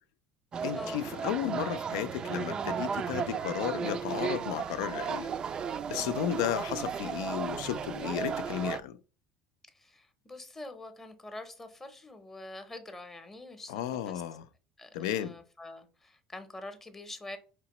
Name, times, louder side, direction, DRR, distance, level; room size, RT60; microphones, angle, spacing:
sound 1, 0.5-8.8, right 7 dB, 35° right, 0.3 m, -35 dB
voice 1, 0.6-5.3 5.9-8.9 13.7-14.5 14.9-15.4, left 11 dB, 85° left, 0.4 m, -33 dB
voice 2, 9.7-14.2 14.8-17.4, left 2 dB, 15° left, 0.7 m, -45 dB
5.0 x 2.9 x 2.9 m
supercardioid pair, 105°, 2 cm